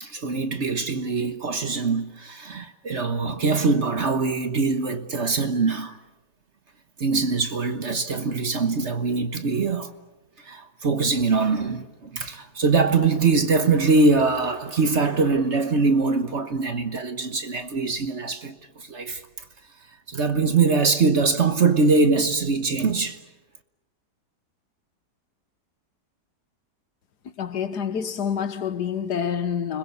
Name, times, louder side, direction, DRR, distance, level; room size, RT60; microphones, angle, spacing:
voice 1, 0.0-6.0 7.0-9.9 10.4-19.2 20.1-23.2, right 4 dB, 45° right, 1.3 m, -23 dB
voice 2, 27.4-29.8, left 7 dB, 65° left, 1.7 m, -27 dB
30.0 x 21.0 x 8.4 m
omnidirectional pair, 1.9 m